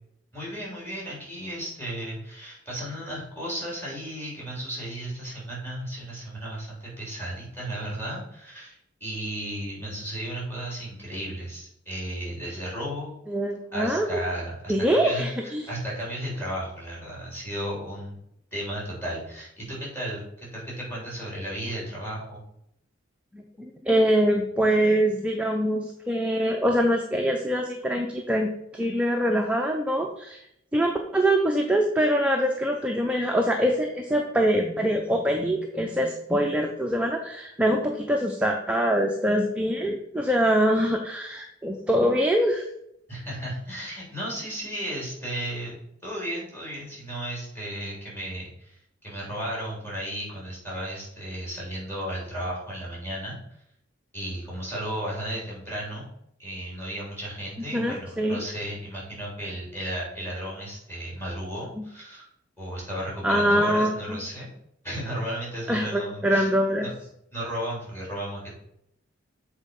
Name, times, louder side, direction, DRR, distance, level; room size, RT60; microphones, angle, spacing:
voice 1, 0.3-13.1 13.7-18.2 18.5-22.5 43.1-53.4 54.1-56.1 56.4-62.3 62.6-64.5 64.8-66.5 66.8-66.9 67.3-68.5, right 1 dB, 10° left, -5 dB, 3.3 m, -34 dB
voice 2, 13.3-14.2 14.7-15.6 23.3-30.4 30.7-42.6 57.7-58.4 63.2-64.2 65.7-66.9, equal, 5° right, 1 dB, 0.5 m, -24 dB
7.6 x 4.1 x 5.3 m, 0.75 s
head